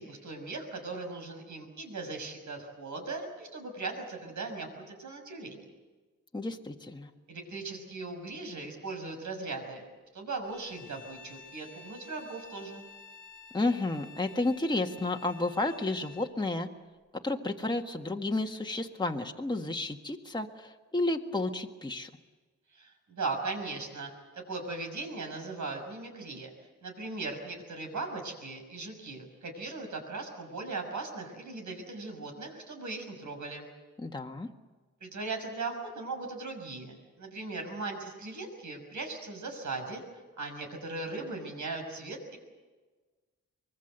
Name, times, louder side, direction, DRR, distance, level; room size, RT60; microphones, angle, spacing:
voice 1, 0.0-5.6 7.3-9.8 10.1-12.9 22.7-26.5 26.8-33.7 35.0-42.4, right 3 dB, 70° right, 4 dB, 6.2 m, -38 dB
voice 2, 6.3-7.1 13.5-16.7 17.2-22.1 34.0-34.5, left 2 dB, 15° left, 2 dB, 1.6 m, -31 dB
Bowed string instrument, 10.4-16.4, left 5 dB, 90° left, 2.1 m, -52 dB
24.5 x 22.0 x 8.0 m, 1.3 s
wide cardioid pair, 105°, 31 cm